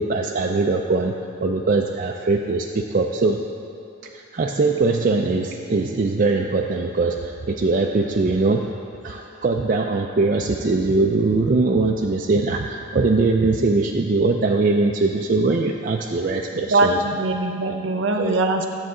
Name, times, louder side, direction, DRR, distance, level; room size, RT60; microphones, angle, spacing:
voice 1, 0.0-3.4 4.0-8.7 9.0-17.0 18.2-18.4, right 3 dB, 40° right, 1 dB, 0.3 m, -21 dB
voice 2, 16.5-18.7, right 2 dB, 60° right, 4 dB, 0.8 m, -21 dB
12.0 x 8.0 x 3.7 m, 2.5 s
head